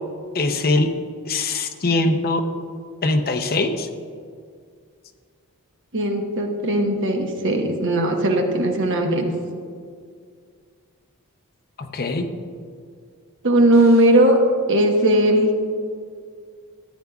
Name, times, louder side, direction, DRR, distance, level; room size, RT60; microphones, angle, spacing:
voice 1, 0.3-0.9 1.3-2.4 3.0-3.9 11.8-12.3, left 2 dB, 45° left, 6 dB, 0.7 m, -22 dB
voice 2, 5.9-9.3 13.4-14.4 14.7-15.5, right 1 dB, 60° right, 3 dB, 1.1 m, -18 dB
14.0 x 9.3 x 2.4 m, 2.1 s
head